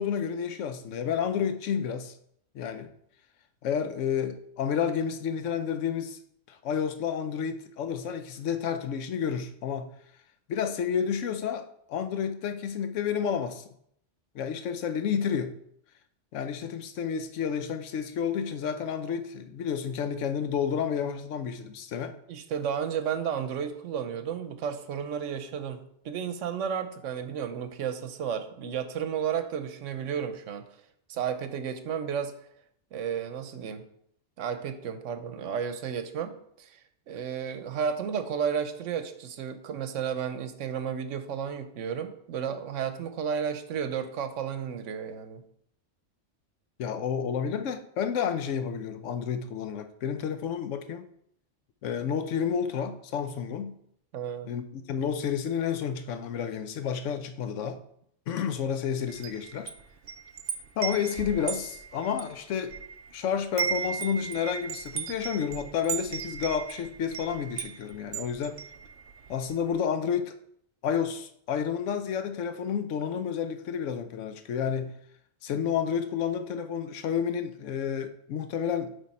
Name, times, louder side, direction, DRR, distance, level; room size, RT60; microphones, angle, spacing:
voice 1, 0.0-2.1 2.5-2.9 3.6-6.2 6.5-9.9 10.5-13.7 14.3-15.5 16.3-22.1 46.8-51.0 51.8-53.7 54.5-57.8 58.3-59.7 60.8-62.7 63.1-68.6 69.3-70.3 70.8-74.9 75.4-78.9, left 7 dB, 90° left, 9 dB, 1.0 m, -30 dB
voice 2, 22.3-30.7 31.1-32.3 32.9-33.9 34.4-45.4 54.1-54.5, right 7 dB, 85° right, 9 dB, 1.0 m, -33 dB
Wind chime, 59.1-63.2 63.4-69.4, right 7 dB, 60° right, 0.7 m, -36 dB
9.0 x 3.3 x 4.2 m, 0.70 s
omnidirectional pair, 1.2 m